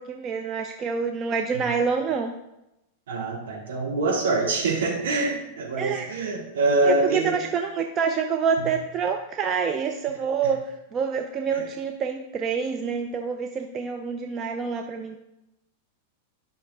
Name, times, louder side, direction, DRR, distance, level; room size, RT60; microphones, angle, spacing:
voice 1, 0.0-2.3 5.7-6.1 6.8-15.2, right 6 dB, 30° right, 5 dB, 0.6 m, -27 dB
voice 2, 3.1-7.3 11.5-11.6, right 2 dB, 65° right, -3 dB, 2.8 m, -25 dB
11.5 x 5.8 x 3.7 m, 0.91 s
figure-of-eight pair, 95°, 0 cm